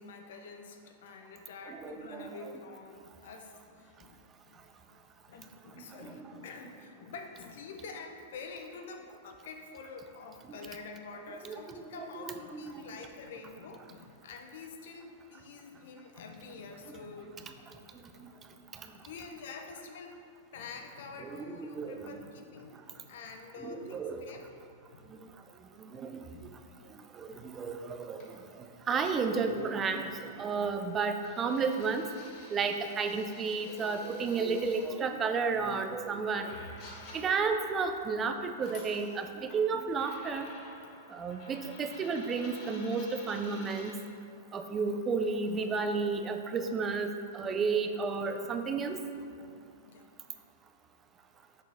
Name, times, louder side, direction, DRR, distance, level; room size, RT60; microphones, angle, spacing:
voice 1, 0.0-5.0 5.3-20.2 20.5-24.5 24.9-25.1 26.3-26.6 27.3-27.5 40.3-40.4 40.8-41.3 41.9-42.0 47.4-47.8 48.4-48.9 49.1-49.6 49.8-50.1, left 4 dB, 65° left, 4 dB, 0.7 m, -48 dB
voice 2, 1.7-2.3 5.9-6.3 10.5-10.6 11.3-11.6 12.0-12.3 12.6-12.8 18.2-18.3 21.4-22.2 23.6-24.2 25.8-26.1 27.1-32.1 32.5-36.6 37.1-40.5 41.1-43.9 44.5-47.1 47.3-49.0, right 4 dB, 25° right, 6 dB, 0.5 m, -32 dB
sound 1, 28.2-28.3 29.0-34.9 35.9-36.0 36.4-37.9 38.5-39.6 40.0-43.9, left 2 dB, 50° left, 1.4 m, -51 dB
6.4 x 6.0 x 3.5 m, 2.3 s
hypercardioid pair, 110°, 0 cm